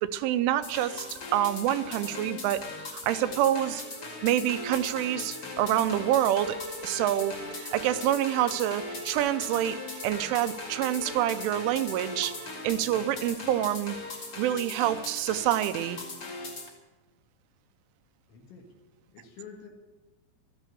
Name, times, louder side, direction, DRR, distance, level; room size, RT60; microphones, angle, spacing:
voice 1, 0.0-2.6 2.9-3.8 4.2-6.6 6.8-9.8 10.0-12.4 12.6-14.0 14.4-16.0, right 12 dB, 90° right, 11 dB, 3.2 m, -27 dB
sound 1, 0.6-16.7, left 3 dB, 45° left, 2.0 m, -40 dB
Bowed string instrument, 3.6-12.7, right 1 dB, 60° right, 1.8 m, -43 dB
voice 2, 18.3-18.7 19.0-19.7, left 7 dB, 75° left, 0 dB, 4.0 m, -48 dB
14.0 x 10.5 x 8.2 m, 1.2 s
omnidirectional pair, 5.4 m